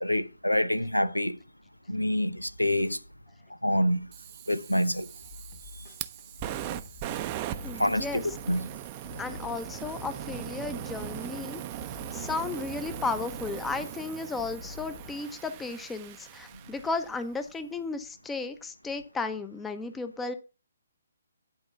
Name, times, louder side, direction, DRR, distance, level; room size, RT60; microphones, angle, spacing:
voice 1, 0.0-1.4 1.9-3.0 3.6-4.1 4.5-5.1 7.7-8.2 8.5-8.7, left 1 dB, 90° left, 0.8 m, -26 dB
Fire, 4.1-17.2, right 12 dB, 25° right, 0.7 m, -40 dB
sound 1, 5.2-15.1, left 4 dB, 35° left, 1.8 m, -48 dB
voice 2, 7.6-8.2 9.2-11.6 12.1-20.3, left 3 dB, 10° left, 0.9 m, -34 dB
11.0 x 4.7 x 6.8 m
figure-of-eight pair, 135°, 0 cm